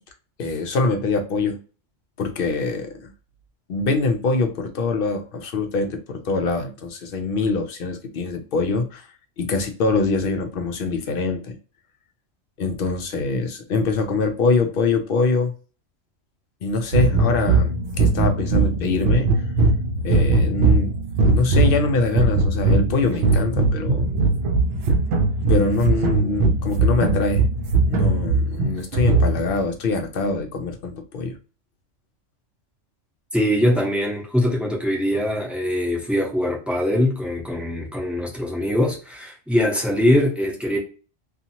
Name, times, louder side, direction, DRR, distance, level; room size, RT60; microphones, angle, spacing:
voice 1, 0.4-1.6 2.2-3.1 3.7-9.1 9.4-11.6 12.6-15.5 16.6-19.4 20.0-20.9 21.2-24.1 25.5-27.4 27.9-31.4, left 3 dB, 60° left, 0.6 m, -24 dB
sound 1, 16.9-29.6, right 3 dB, 65° right, 0.7 m, -20 dB
voice 2, 33.3-40.8, left 1 dB, ahead, 0.6 m, -22 dB
2.7 x 2.4 x 2.7 m
omnidirectional pair, 1.3 m